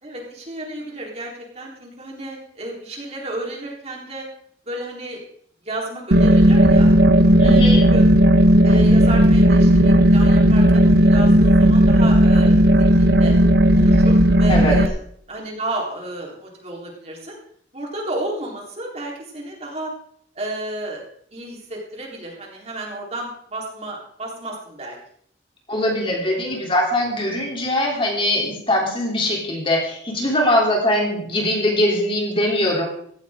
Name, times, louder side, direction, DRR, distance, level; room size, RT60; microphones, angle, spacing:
voice 1, 0.0-4.3 4.7-5.2 5.6-6.9 7.4-8.1 8.6-13.3 13.7-14.9 15.3-17.4 17.7-19.9 20.4-21.0 21.3-25.0, right 1 dB, 35° right, -1 dB, 3.8 m, -32 dB
sound 1, 6.1-14.9, equal, 60° right, 0.9 m, -13 dB
voice 2, 7.4-7.8 14.5-14.8 25.7-32.9, left 1 dB, 30° left, 0 dB, 3.3 m, -21 dB
16.5 x 14.5 x 3.7 m, 0.62 s
head